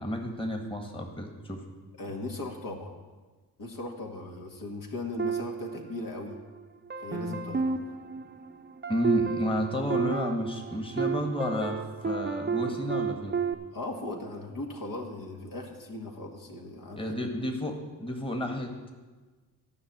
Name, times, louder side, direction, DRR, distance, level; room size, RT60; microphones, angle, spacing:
voice 1, 0.0-1.6 8.9-13.4 17.0-18.9, left 1 dB, 15° left, 3 dB, 1.8 m, -31 dB
voice 2, 2.0-2.9 3.6-6.3 7.0-7.8 13.7-17.2, left 2 dB, 55° left, 1 dB, 2.1 m, -38 dB
sound 1, 5.2-6.4 6.9-13.5, right 5 dB, 25° right, 0.9 m, -32 dB
11.5 x 5.8 x 8.9 m, 1.3 s
supercardioid pair, 65°, 40 cm